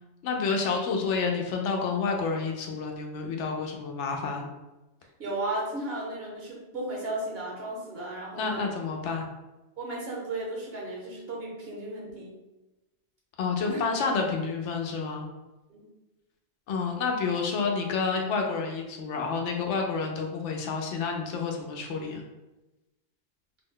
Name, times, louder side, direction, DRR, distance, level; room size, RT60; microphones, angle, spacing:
voice 1, 0.2-4.5 8.4-9.3 13.4-15.3 16.7-22.2, left 4 dB, 80° left, 1 dB, 0.9 m, -29 dB
voice 2, 5.2-8.7 9.8-12.3 13.7-13.8 15.7-15.9, right 2 dB, 60° right, -3 dB, 1.0 m, -35 dB
2.7 x 2.1 x 3.6 m, 1.0 s
omnidirectional pair, 1.2 m